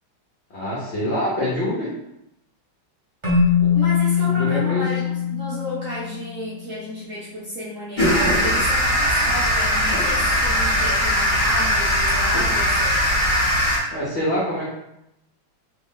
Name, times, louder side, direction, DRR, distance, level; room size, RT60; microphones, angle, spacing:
voice 1, 0.5-1.9 4.2-4.8 13.9-14.6, equal, 75° left, -6 dB, 0.6 m, -25 dB
Keyboard (musical), 3.2-6.5, left 7 dB, 35° right, 0.4 m, -21 dB
voice 2, 3.6-13.0, equal, 85° right, -7 dB, 0.7 m, -32 dB
sound 1, 8.0-13.8, equal, 35° left, 0.8 m, -20 dB
3.2 x 2.3 x 3.6 m, 0.86 s
omnidirectional pair, 2.2 m